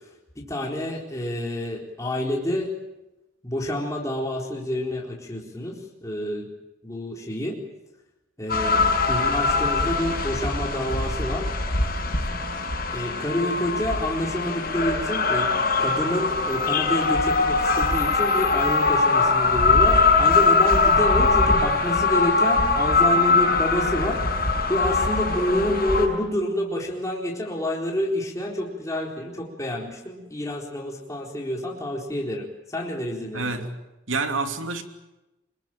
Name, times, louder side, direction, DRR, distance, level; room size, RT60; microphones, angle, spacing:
voice 1, 0.4-2.7 3.4-6.5 6.8-7.5 8.4-11.5 12.9-15.5 15.8-24.2 24.7-33.7, left 1 dB, 15° left, 4.0 m, -28 dB
sound 1, 8.5-26.1, left 3 dB, 50° left, 6.0 m, -22 dB
voice 2, 33.3-33.8 34.1-34.8, right 3 dB, 75° right, 2.9 m, -28 dB
25.5 x 21.5 x 9.0 m
head